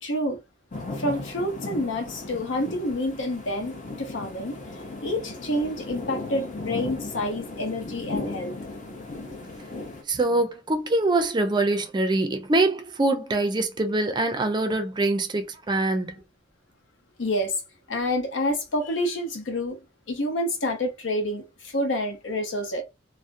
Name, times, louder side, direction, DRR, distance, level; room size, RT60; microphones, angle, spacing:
voice 1, 0.0-0.4 1.0-4.6 5.0-8.6 17.2-17.6 17.9-19.8 20.1-22.8, left 1 dB, 80° left, 0.8 m, -28 dB
sound 1, 0.7-10.0, left 2 dB, 40° left, 0.6 m, -36 dB
voice 2, 10.1-16.1, right 2 dB, 25° right, 0.4 m, -24 dB
2.4 x 2.0 x 2.5 m
head